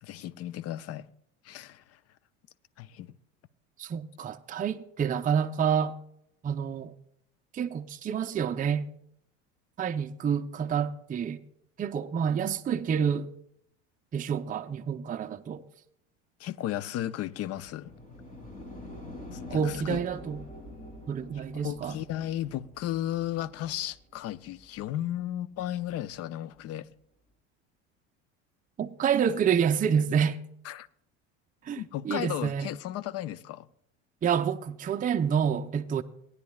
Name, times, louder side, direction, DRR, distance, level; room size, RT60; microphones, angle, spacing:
voice 1, 0.0-1.1 1.4-2.0 2.8-3.1 16.4-17.9 19.3-20.0 21.5-26.9 30.6-30.9 31.8-33.7, left 12 dB, 45° left, 0.6 m, -34 dB
voice 2, 3.8-6.0 6.4-6.9 7.5-8.9 9.8-11.4 11.8-13.3 14.1-15.6 19.5-20.4 21.1-22.0 28.8-30.4 31.6-32.7 34.2-36.0, right 7 dB, 25° right, 0.6 m, -28 dB
sound 1, 17.5-24.8 25.9-26.0, left 1 dB, 20° left, 2.9 m, -46 dB
19.0 x 9.7 x 2.3 m
hypercardioid pair, 80°, 36 cm